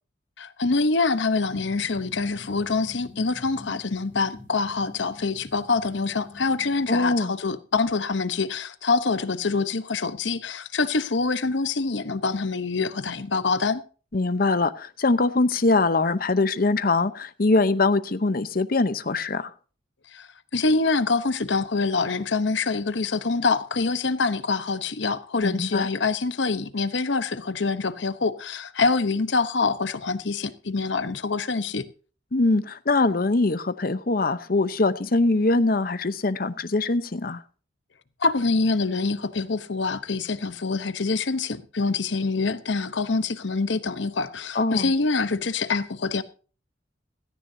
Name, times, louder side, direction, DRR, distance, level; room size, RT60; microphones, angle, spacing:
voice 1, 0.4-13.8 20.1-31.9 38.2-46.2, left 4 dB, 80° left, 0.9 m, -25 dB
sound 1, 1.4-7.0, left 2 dB, 10° right, 6.2 m, -45 dB
voice 2, 6.9-7.3 14.1-19.5 25.4-25.9 32.3-37.4 44.5-44.9, left 3 dB, 50° left, 0.8 m, -23 dB
16.5 x 14.5 x 2.7 m
head